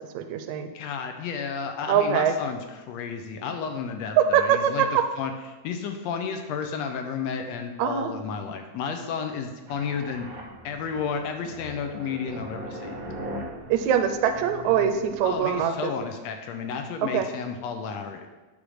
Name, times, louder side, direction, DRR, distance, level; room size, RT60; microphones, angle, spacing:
voice 1, 0.1-0.7 1.9-2.3 4.3-4.9 7.8-8.1 13.7-15.9 17.1-17.3, right 8 dB, 90° right, 7 dB, 2.0 m, -23 dB
voice 2, 0.7-5.3 5.6-10.3 10.6-13.2 15.2-18.3, left 6 dB, 75° left, 6 dB, 1.7 m, -32 dB
sound 1, 9.7-15.6, right 1 dB, 70° right, 0.8 m, -40 dB
9.8 x 3.6 x 6.2 m, 1.2 s
omnidirectional pair, 3.3 m